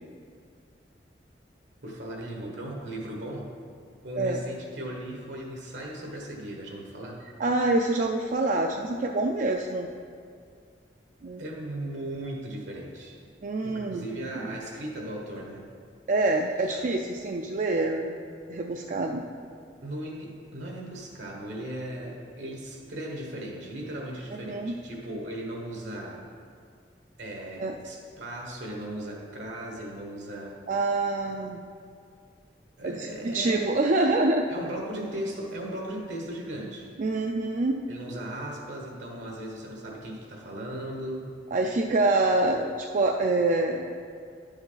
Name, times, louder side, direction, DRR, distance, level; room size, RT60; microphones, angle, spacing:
voice 1, 1.8-3.5 4.0-7.2 11.4-13.2 13.6-15.7 19.8-26.3 27.2-30.6 32.8-33.7 34.5-36.9 37.9-41.3, right 1 dB, 80° right, -1 dB, 1.4 m, -37 dB
voice 2, 4.1-4.5 7.4-9.9 11.2-11.4 13.4-14.1 16.1-18.2 18.5-19.2 24.4-24.8 27.6-27.8 30.7-31.6 32.8-34.5 37.0-37.8 41.5-43.9, right 2 dB, 45° right, 3 dB, 0.4 m, -26 dB
10.5 x 7.1 x 4.0 m, 2.2 s
head